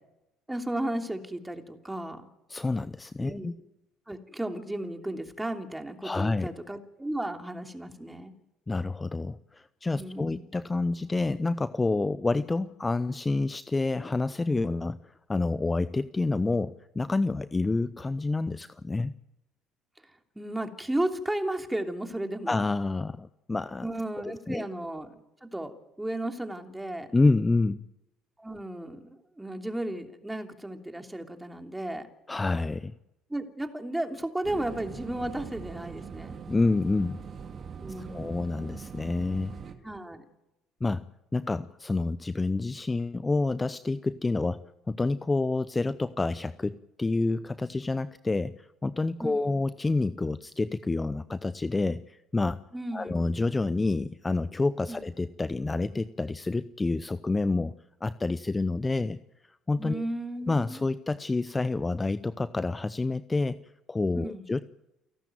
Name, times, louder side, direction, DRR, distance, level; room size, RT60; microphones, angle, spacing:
voice 1, 0.5-2.2 3.2-3.5 4.1-8.3 9.9-10.5 20.3-22.6 23.8-27.1 28.4-32.1 33.3-36.3 37.8-38.6 39.8-40.2 49.2-49.6 52.7-53.2 54.9-55.0 59.8-60.8 64.1-64.5, right 1 dB, 10° right, 4 dB, 3.0 m, -34 dB
voice 2, 2.5-3.6 6.0-6.5 8.7-19.1 22.5-23.9 24.5-24.6 27.1-27.8 32.3-32.9 36.5-37.2 38.0-39.6 40.8-41.0 41.3-52.6 52.9-57.7 58.0-59.2 59.4-60.0 60.5-63.6 63.9-64.6, left 3 dB, 20° left, 15 dB, 0.7 m, -28 dB
sound 1, 34.4-39.8, right 6 dB, 45° right, 2.3 m, -42 dB
29.0 x 12.0 x 9.1 m, 0.95 s
hypercardioid pair, 60°, 0 cm